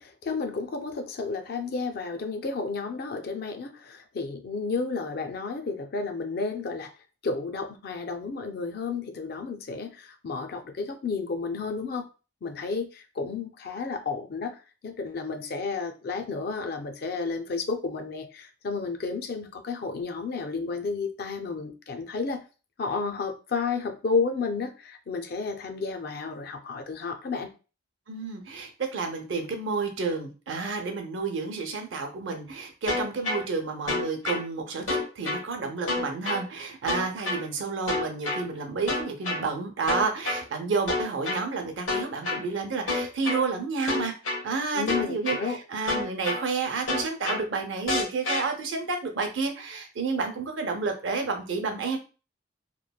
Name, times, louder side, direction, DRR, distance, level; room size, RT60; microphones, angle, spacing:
voice 1, 0.0-6.9 7.2-12.0 12.4-22.4 22.8-27.5 44.7-45.6, left 4 dB, 50° left, 7 dB, 0.4 m, -32 dB
voice 2, 28.1-52.0, right 4 dB, 70° right, 4 dB, 0.6 m, -30 dB
sound 1, 32.9-33.4 33.9-34.4 34.9-35.4 35.9-36.4 36.9-37.4 37.9-38.4 38.9-39.4 39.9-40.4 40.9-41.4 41.9-42.4 42.9-43.4 43.9-44.4 44.9-45.4 45.9-46.4 46.9-47.4 47.9-48.4, left 2 dB, 75° left, 1.2 m, -27 dB
3.0 x 2.1 x 2.2 m, 0.33 s
head